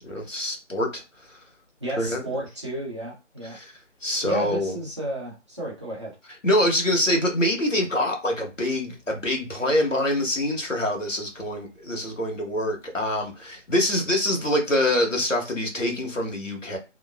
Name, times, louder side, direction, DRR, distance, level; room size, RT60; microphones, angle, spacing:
voice 1, 0.0-1.0 1.3-1.4 2.0-2.2 3.5-3.7 4.0-4.7 6.4-16.8, left 1 dB, 85° left, 1.3 m, -25 dB
voice 2, 1.8-3.6 4.2-6.2, right 1 dB, 25° right, 0.8 m, -32 dB
2.8 x 2.1 x 2.4 m
figure-of-eight pair, 155°, 37 cm